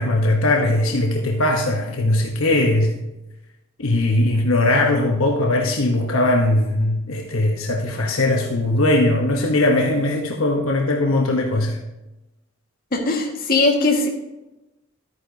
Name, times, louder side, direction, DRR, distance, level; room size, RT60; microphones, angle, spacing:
voice 1, 0.0-2.9 3.8-11.8, left 2 dB, 80° left, 1 dB, 1.0 m, -20 dB
voice 2, 12.9-14.1, left 3 dB, 45° left, 0 dB, 1.7 m, -19 dB
12.5 x 9.5 x 2.8 m, 0.99 s
head